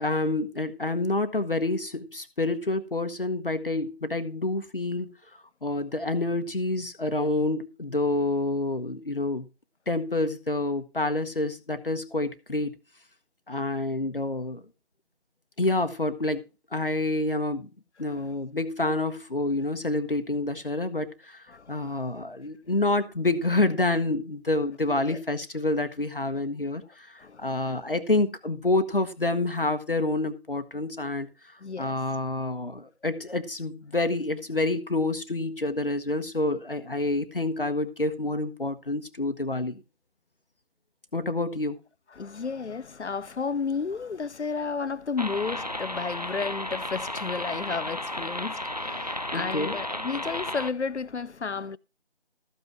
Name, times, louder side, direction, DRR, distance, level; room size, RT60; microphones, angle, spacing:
voice 1, 0.0-9.5 9.9-12.7 13.5-14.6 15.6-17.7 18.0-39.8 41.1-41.8 49.3-49.8, left 2 dB, 50° left, 1.1 m, -28 dB
voice 2, 21.5-22.0 25.1-25.2 27.2-27.8 31.6-32.0 42.1-51.8, left 5 dB, 80° left, 0.7 m, -32 dB
sound 1, 45.2-50.7, left 1 dB, 35° right, 0.5 m, -33 dB
13.5 x 5.5 x 5.8 m
figure-of-eight pair, 170°, 34 cm